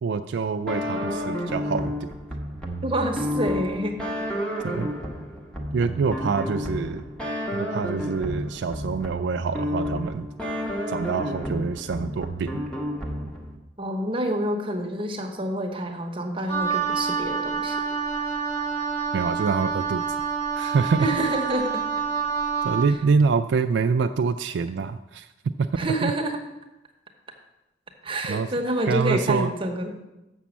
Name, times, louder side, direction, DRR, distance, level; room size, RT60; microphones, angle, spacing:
voice 1, 0.0-2.2 4.6-4.9 5.7-7.0 7.5-10.3 10.9-12.6 19.1-20.1 20.5-21.1 22.6-25.3 25.6-25.7 26.0-26.1 28.3-28.5 28.9-29.5, right 5 dB, 70° right, 7 dB, 0.3 m, -25 dB
sound 1, 0.7-13.6, equal, 5° left, 1.1 m, -31 dB
voice 2, 2.8-4.0 13.8-17.8 21.0-21.8 25.8-26.4 28.0-30.0, right 1 dB, 30° right, 3 dB, 1.0 m, -27 dB
Wind instrument woodwind instrument, 16.5-22.9, right 6 dB, 30° left, 1.4 m, -27 dB
7.1 x 6.0 x 7.3 m, 0.98 s
head